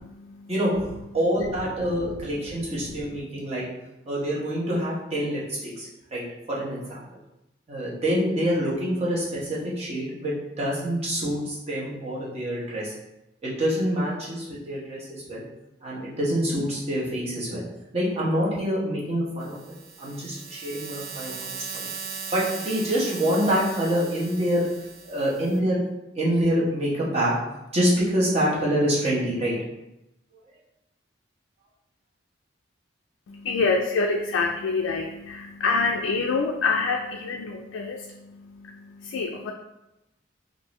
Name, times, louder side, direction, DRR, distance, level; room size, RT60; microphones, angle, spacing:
voice 1, 0.1-0.5 2.2-2.3 33.3-39.5, left 4 dB, 90° left, 2 dB, 0.3 m, -27 dB
voice 2, 1.1-3.6 4.1-7.0 7.7-12.9 13.4-15.4 15.8-17.6 17.9-19.6 20.0-21.9 22.3-24.6 25.1-25.8 26.1-27.3 27.7-29.5, equal, 35° right, -6 dB, 1.0 m, -26 dB
sound 1, 19.4-25.6, right 6 dB, 55° right, 0.3 m, -38 dB
3.6 x 2.6 x 3.0 m, 0.92 s
head